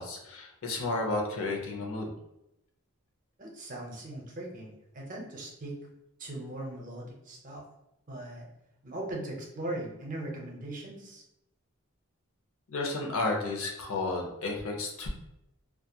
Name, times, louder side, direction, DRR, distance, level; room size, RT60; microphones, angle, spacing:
voice 1, 0.0-2.1 12.7-15.1, left 2 dB, 85° left, 1 dB, 0.6 m, -32 dB
voice 2, 3.4-5.8 6.2-7.6 8.1-8.5 8.8-11.2, right 1 dB, 40° right, 0 dB, 0.6 m, -39 dB
2.7 x 2.3 x 2.2 m, 0.85 s
head